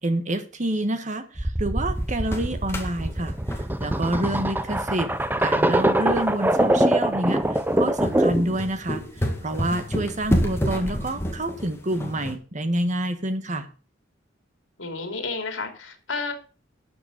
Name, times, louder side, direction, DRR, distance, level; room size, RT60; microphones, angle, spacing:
voice 1, 0.0-5.1 5.4-7.4 7.8-9.0 9.4-13.7, right 1 dB, 40° right, 1.4 m, -28 dB
sound 1, 1.4-8.6, right 1 dB, 10° right, 0.7 m, -23 dB
sound 2, 2.0-12.3, equal, 15° left, 1.9 m, -30 dB
voice 2, 14.8-16.3, left 4 dB, 75° left, 2.9 m, -32 dB
12.5 x 7.2 x 5.2 m
head